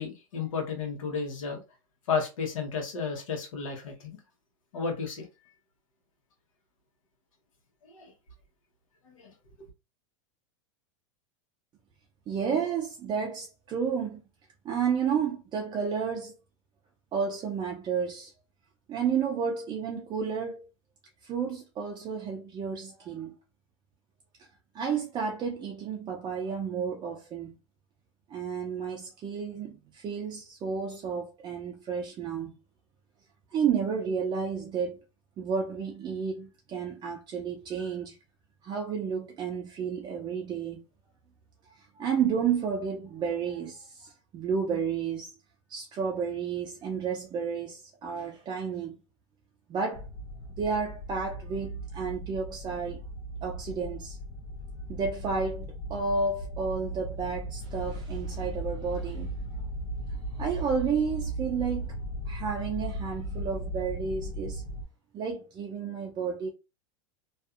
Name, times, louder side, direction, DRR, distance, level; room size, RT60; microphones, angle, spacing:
voice 1, 0.0-1.6 2.1-4.2 4.7-5.3 7.9-8.1 9.0-9.3 9.6-9.7, left 5 dB, 85° left, 1.0 m, -33 dB
voice 2, 12.3-14.2 14.6-16.3 17.1-18.3 18.9-20.7 21.2-23.3 24.7-27.6 28.3-32.6 33.5-35.0 35.4-38.2 38.6-40.8 41.7-45.3 45.7-49.0 49.7-50.1 50.5-53.0 53.4-54.2 54.9-59.3 60.4-61.9 62.3-64.6 65.1-66.5, right 6 dB, 25° right, 0.4 m, -31 dB
sound 1, 49.9-64.8, right 1 dB, 50° left, 0.8 m, -37 dB
2.6 x 2.3 x 2.4 m
hypercardioid pair, 120°, 17 cm